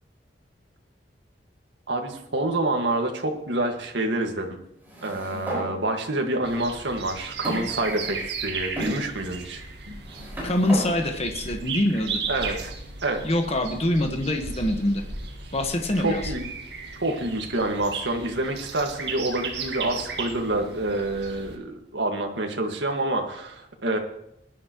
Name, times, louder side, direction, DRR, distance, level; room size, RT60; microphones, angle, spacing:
voice 1, 1.9-4.6 5.0-9.6 12.3-12.7 13.0-13.2 16.0-16.5 17.0-24.0, right 2 dB, 80° right, 3 dB, 1.8 m, -27 dB
sound 1, 4.8-5.7 6.5-6.6 7.4-8.3 8.8-9.0 9.8-10.9, equal, 10° right, 5.3 m, -33 dB
sound 2, 6.4-21.6, right 4 dB, 65° right, 1.9 m, -36 dB
voice 2, 10.4-12.2 13.2-15.0 15.5-16.3, left 1 dB, 35° left, 4 dB, 1.4 m, -24 dB
20.5 x 11.0 x 3.1 m, 0.80 s
head